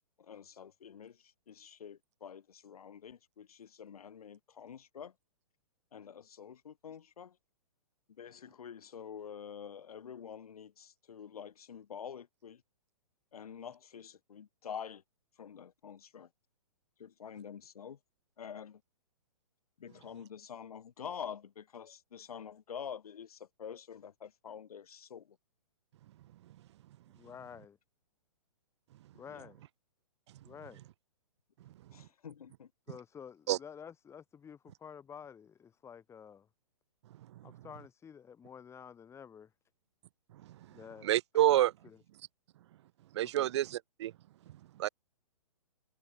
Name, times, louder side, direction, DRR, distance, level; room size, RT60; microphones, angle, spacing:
voice 1, 0.2-5.1 5.9-7.3 8.2-12.6 13.3-15.0 15.4-16.3 17.0-18.0 18.4-18.8 19.8-25.3 29.4-29.5 31.9-32.7, left 8 dB, 70° left, 3.0 m, -47 dB
voice 2, 27.1-27.8 29.1-29.6 30.4-30.8 32.9-36.5 37.4-39.5 40.7-41.1 41.4-42.0 43.2-43.5, left 7 dB, 15° left, 4.8 m, -50 dB
voice 3, 41.0-41.7 43.1-44.1 44.8-44.9, right 13 dB, 45° right, 0.7 m, -27 dB
hypercardioid pair, 135°, 19 cm